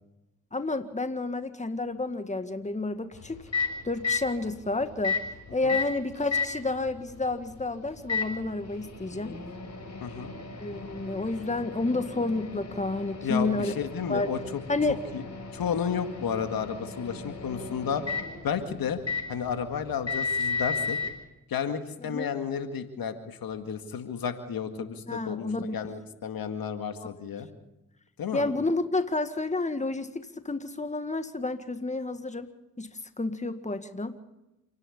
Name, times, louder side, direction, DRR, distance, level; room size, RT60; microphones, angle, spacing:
voice 1, 0.5-3.4 3.8-5.2 5.5-9.4 10.6-13.7 14.1-14.3 14.7-15.0 22.1-22.3 25.1-25.9 27.0-27.1 28.3-32.5 32.8-34.2, left 2 dB, 20° left, 9 dB, 1.8 m, -30 dB
Microwave oven, 3.1-21.1, left 5 dB, 45° left, 6.3 m, -35 dB
voice 2, 10.0-10.3 13.2-14.6 14.9-15.2 15.5-18.1 18.4-19.0 19.3-21.0 21.5-27.5 28.2-28.5, left 7 dB, 70° left, 7 dB, 2.1 m, -32 dB
27.5 x 10.5 x 10.0 m, 0.96 s
supercardioid pair, 50°, 36 cm